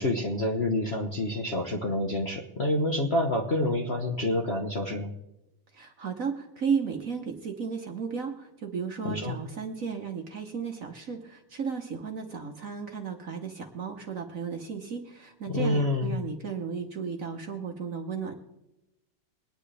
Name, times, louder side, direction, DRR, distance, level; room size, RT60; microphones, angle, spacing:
voice 1, 0.0-5.1 9.0-9.4 15.5-16.2, left 1 dB, 45° left, 1 dB, 0.8 m, -28 dB
voice 2, 5.7-18.3, right 6 dB, 50° right, 4 dB, 1.1 m, -34 dB
22.5 x 9.9 x 3.3 m, 0.94 s
omnidirectional pair, 2.4 m